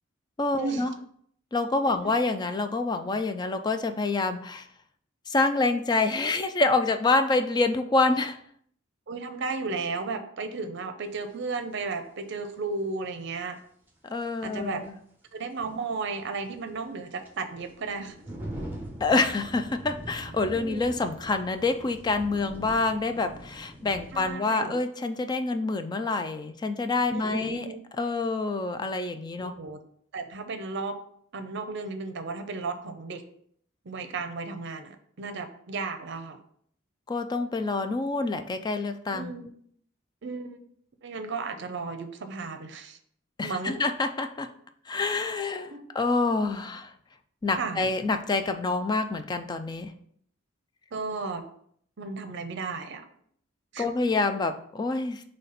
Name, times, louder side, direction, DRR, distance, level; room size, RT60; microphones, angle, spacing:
voice 1, 0.4-0.9 1.5-4.7 5.3-8.4 14.1-14.9 19.0-27.7 28.0-29.5 37.1-39.3 43.4-44.5 44.9-46.9 47.4-49.9 53.8-55.2, left 3 dB, 20° left, 8 dB, 0.3 m, -27 dB
voice 2, 9.1-13.6 14.4-14.8 15.3-18.2 20.5-20.8 24.1-24.8 27.1-27.8 29.4-29.8 30.1-31.0 31.3-33.2 33.8-36.4 39.1-39.5 40.2-40.6 41.0-43.0 43.4-43.8 45.7-45.9 47.6-47.8 50.9-51.5 52.0-53.0 53.7-53.9, right 4 dB, 65° right, 8 dB, 0.6 m, -34 dB
sound 1, 11.3-11.4 13.9-14.0 14.4-14.5 16.1-24.3, right 1 dB, 10° right, 1.0 m, -42 dB
4.1 x 3.2 x 4.0 m, 0.64 s
head